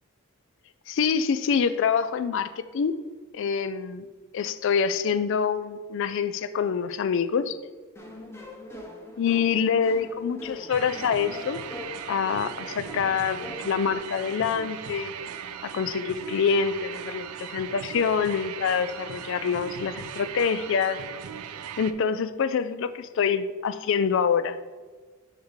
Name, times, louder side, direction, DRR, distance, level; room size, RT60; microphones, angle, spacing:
voice 1, 0.9-3.0 3.3-4.1 4.3-7.6 9.2-11.6 12.1-15.1 15.6-21.0 21.8-24.6, left 6 dB, 60° left, 13 dB, 0.3 m, -26 dB
sound 1, 8.0-14.0, left 1 dB, 10° left, 0.6 m, -42 dB
sound 2, 10.7-21.9, right 8 dB, 85° right, 0.4 m, -38 dB
10.0 x 3.6 x 3.2 m, 1.4 s
head